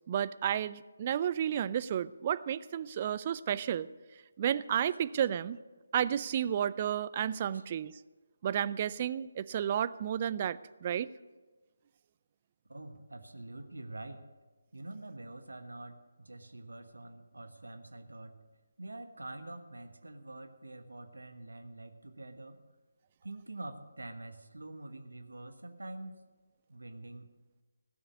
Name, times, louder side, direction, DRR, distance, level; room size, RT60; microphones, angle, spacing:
voice 1, 0.1-3.9 4.4-5.6 5.9-7.9 8.4-11.1, right 9 dB, 30° right, 16 dB, 0.4 m, -32 dB
voice 2, 12.7-14.3 14.7-18.4 18.8-22.6 23.2-26.2 26.7-27.3, right 2 dB, 70° right, 7 dB, 1.3 m, -46 dB
16.0 x 7.1 x 8.3 m, 1.3 s
figure-of-eight pair, 150°, 0 cm